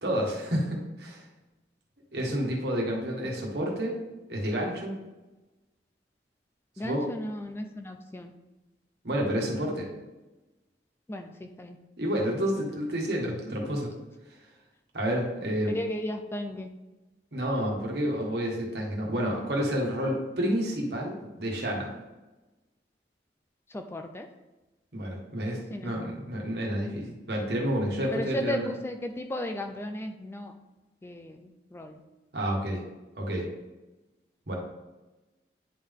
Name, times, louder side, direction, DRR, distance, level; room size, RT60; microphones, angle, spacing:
voice 1, 0.0-1.2 2.1-4.0 4.3-5.0 6.8-7.1 9.0-9.9 12.0-13.9 14.9-15.8 17.3-21.9 24.9-28.7 32.3-32.8 33.2-33.5 34.5-34.6, equal, 65° right, -1 dB, 1.4 m, -29 dB
voice 2, 6.8-8.3 11.1-11.8 15.7-16.7 23.7-24.3 25.7-25.9 28.1-30.5 31.0-32.0, left 1 dB, 15° left, 5 dB, 0.3 m, -35 dB
9.7 x 3.7 x 3.6 m, 1.1 s
head